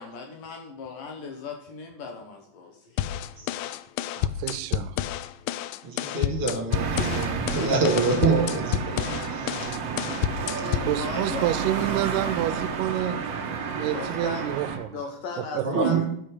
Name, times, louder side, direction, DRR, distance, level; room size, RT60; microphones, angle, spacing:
voice 1, 0.0-3.1 10.5-11.7 13.9-14.5 14.9-16.0, left 4 dB, 65° left, 3 dB, 2.3 m, -37 dB
sound 1, 3.0-11.0, left 11 dB, 85° left, 2.0 m, -30 dB
voice 2, 4.2-5.0 10.9-13.2 13.8-15.0 15.5-15.7, right 13 dB, 85° right, 12 dB, 2.5 m, -28 dB
voice 3, 5.8-9.7 11.1-11.2 15.6-16.0, right 4 dB, 40° right, 0 dB, 2.8 m, -26 dB
sound 2, 6.7-14.8, right 6 dB, 65° right, 1.5 m, -31 dB
12.5 x 6.3 x 6.4 m, 0.71 s
omnidirectional pair, 4.7 m